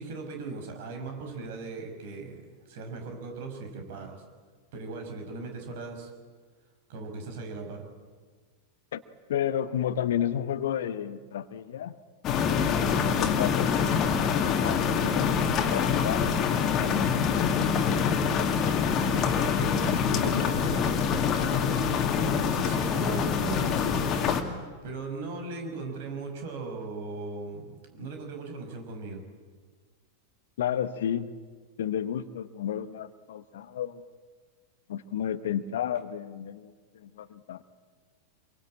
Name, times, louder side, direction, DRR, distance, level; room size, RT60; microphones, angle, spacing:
voice 1, 0.0-4.2 4.7-6.1 6.9-7.9 12.7-13.0 19.1-24.1 24.5-29.3, right 3 dB, 55° right, 4 dB, 5.6 m, -38 dB
voice 2, 9.3-11.9 12.6-14.8 15.1-16.2 16.8-17.6 20.2-20.6 30.6-31.3 31.8-34.0 34.9-37.6, left 10 dB, 60° left, 13 dB, 1.2 m, -32 dB
sound 1, 12.2-24.4, left 6 dB, 30° left, 2.4 m, -25 dB
26.0 x 23.0 x 8.7 m, 1.5 s
figure-of-eight pair, 90°, 0 cm